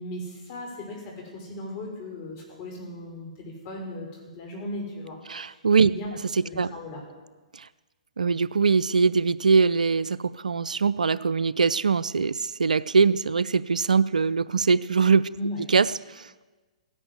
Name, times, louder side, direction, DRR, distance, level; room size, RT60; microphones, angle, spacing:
voice 1, 0.0-4.1 4.4-5.5 5.9-6.1 6.4-7.0 15.3-15.6, left 1 dB, 40° left, 0 dB, 5.7 m, -37 dB
voice 2, 5.3-5.9 6.6-6.7 8.2-10.2 10.4-15.3 15.7-15.9 16.1-16.2, right 5 dB, 80° right, 18 dB, 0.5 m, -22 dB
16.0 x 11.0 x 8.1 m, 1.3 s
hypercardioid pair, 125°, 4 cm